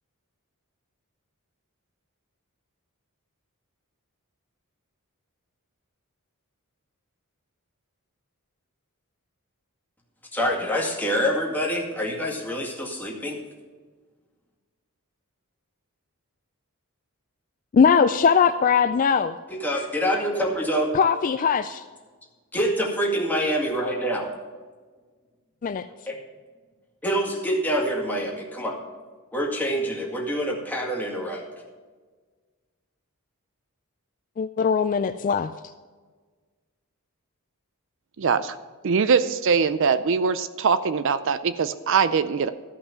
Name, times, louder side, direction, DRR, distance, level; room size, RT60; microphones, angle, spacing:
voice 1, 10.3-13.4 19.5-20.9 22.5-24.3 26.1-26.2 27.0-28.7 29.3-31.4, equal, 10° left, -2 dB, 2.0 m, -26 dB
voice 2, 17.7-19.4 20.9-21.8 25.6-25.8 34.4-35.5, left 6 dB, 35° left, 11 dB, 0.3 m, -20 dB
voice 3, 38.2-38.6 38.8-42.5, right 5 dB, 55° right, 13 dB, 0.5 m, -22 dB
14.0 x 5.5 x 6.9 m, 1.4 s
head